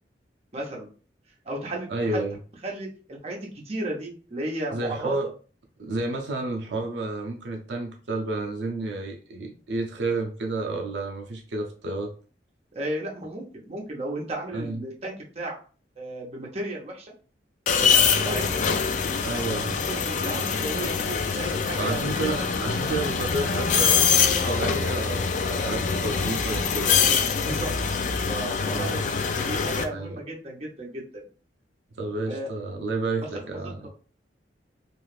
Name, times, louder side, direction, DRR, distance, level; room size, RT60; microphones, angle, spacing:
voice 1, 0.5-0.9 1.4-2.2 2.6-3.4 3.6-5.1 12.7-15.6 16.0-17.1 17.7-18.6 19.5-19.6 19.8-22.1 22.4-22.5 23.0-23.1 27.4-27.7 28.0-31.2 32.3-32.5 33.8-33.9, right 1 dB, 35° right, -1 dB, 0.8 m, -34 dB
voice 2, 1.9-2.4 4.7-5.3 5.8-12.1 14.5-14.8 19.2-19.7 21.8-27.0 28.7-29.0 29.9-30.2 31.9-33.9, right 2 dB, 75° right, 2 dB, 0.5 m, -31 dB
sound 1, 17.7-29.8, left 6 dB, 45° left, 0.3 m, -24 dB
2.5 x 2.3 x 3.2 m, 0.38 s
head